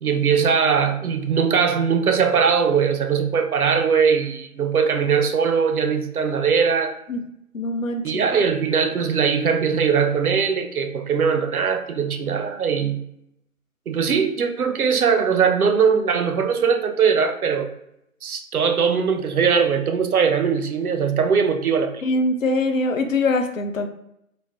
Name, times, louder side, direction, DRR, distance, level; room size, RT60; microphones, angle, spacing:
voice 1, 0.0-6.9 8.0-13.0 13.9-17.7 18.2-22.0, right 6 dB, 85° right, 6 dB, 0.5 m, -20 dB
voice 2, 7.5-8.3 22.0-23.9, left 2 dB, 65° left, 6 dB, 0.5 m, -23 dB
2.5 x 2.0 x 3.1 m, 0.79 s
figure-of-eight pair, 150°, 42 cm